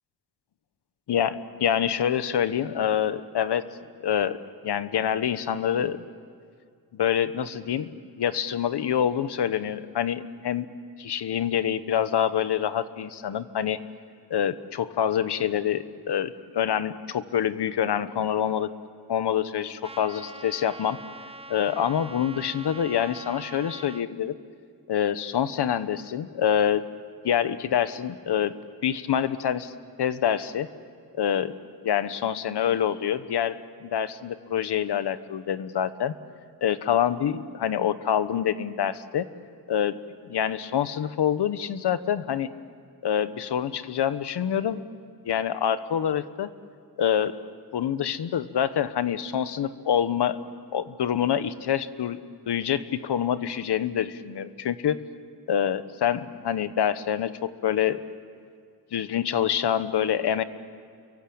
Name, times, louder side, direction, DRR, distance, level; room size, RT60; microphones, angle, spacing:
voice 1, 1.1-3.6 4.0-4.4 4.6-6.0 6.9-7.9 8.2-10.7 11.0-13.8 14.3-18.7 19.1-21.0 21.5-24.4 24.9-26.8 27.2-28.6 28.8-29.7 30.0-30.7 31.1-31.6 31.8-36.1 36.6-39.3 39.7-40.0 40.2-42.5 43.0-44.8 45.2-46.5 47.0-47.3 47.7-50.4 50.7-52.2 52.5-55.0 55.5-58.0 58.9-60.4, left 9 dB, 90° left, 13 dB, 1.1 m, -26 dB
Trumpet, 19.8-24.0, right 2 dB, 15° right, 0.7 m, -43 dB
29.5 x 23.5 x 8.7 m, 2.2 s
wide cardioid pair, 110°, 39 cm